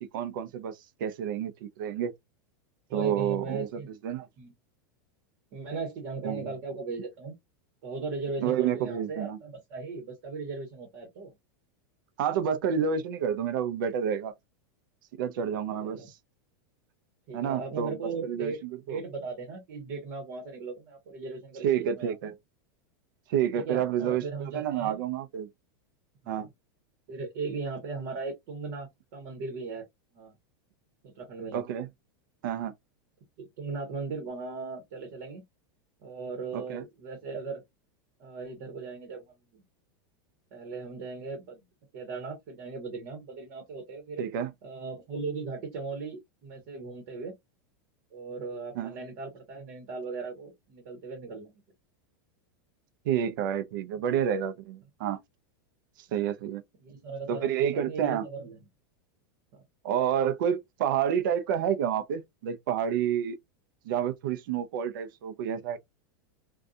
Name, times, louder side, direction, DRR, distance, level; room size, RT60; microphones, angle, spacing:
voice 1, 0.0-2.1 2.9-3.7 4.0-4.3 6.2-6.5 8.4-9.4 12.2-14.3 15.1-16.0 17.3-19.0 21.6-22.3 23.3-24.2 24.5-25.5 26.3-26.5 31.5-31.9 32.4-32.7 36.5-36.8 44.2-44.5 48.7-48.9 53.0-55.2 56.1-56.6 57.3-58.2 59.8-63.4 63.9-65.8, right 9 dB, 65° right, 0.5 m, -29 dB
voice 2, 2.9-3.9 4.4-4.5 5.5-7.4 7.8-11.3 15.8-16.1 17.3-18.6 18.9-22.3 23.6-25.0 26.2-26.5 27.1-28.9 29.1-29.8 30.1-30.4 31.0-31.6 33.4-35.4 36.0-37.6 38.2-39.2 39.5-39.6 40.5-41.6 41.9-44.3 44.6-47.3 48.1-51.6 56.8-58.6 59.5-59.6, right 4 dB, 50° right, 1.1 m, -38 dB
2.6 x 2.3 x 2.3 m
supercardioid pair, 160°, 12 cm